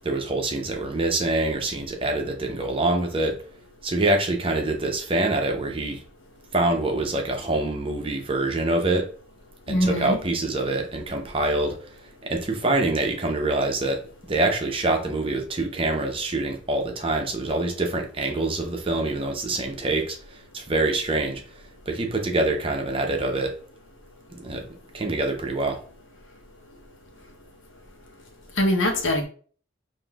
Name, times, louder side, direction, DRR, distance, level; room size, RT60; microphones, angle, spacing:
voice 1, 0.0-3.4 3.8-6.0 6.5-9.1 9.7-11.8 12.2-23.5 24.3-24.7 24.9-25.8, right 2 dB, 30° right, 3 dB, 0.7 m, -25 dB
voice 2, 9.7-10.2 28.6-29.2, left 1 dB, 80° left, 1 dB, 1.0 m, -22 dB
5.7 x 2.6 x 2.4 m, 0.42 s
head